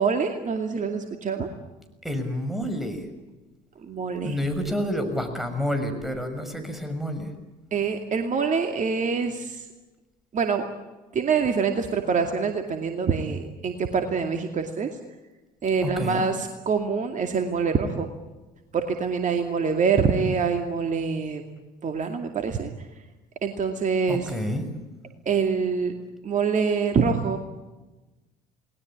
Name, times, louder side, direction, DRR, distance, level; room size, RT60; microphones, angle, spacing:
voice 1, 0.0-1.5 3.8-4.4 7.7-9.6 10.3-10.6 11.1-14.9 15.6-18.1 18.7-21.4 21.8-22.7 23.4-24.3 25.3-25.9 26.2-27.4, right 5 dB, 35° right, 5 dB, 2.4 m, -25 dB
voice 2, 2.0-3.1 4.2-7.3 15.8-16.3 24.1-24.7, equal, ahead, 7 dB, 6.4 m, -29 dB
29.5 x 20.0 x 8.7 m, 1.1 s
figure-of-eight pair, 60°, 21 cm